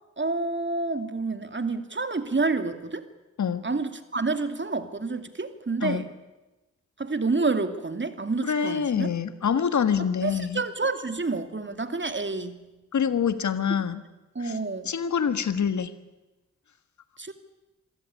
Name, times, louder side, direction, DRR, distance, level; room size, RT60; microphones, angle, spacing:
voice 1, 0.2-3.1 3.6-6.1 7.0-9.1 10.2-12.6 14.3-14.9 17.2-17.3, right 3 dB, 40° right, 9 dB, 2.6 m, -28 dB
voice 2, 8.4-10.6 12.9-14.0 14.4-14.6 14.9-15.9, left 7 dB, 75° left, 12 dB, 1.6 m, -26 dB
26.0 x 15.0 x 9.9 m, 1.1 s
cardioid pair, 40°, 29 cm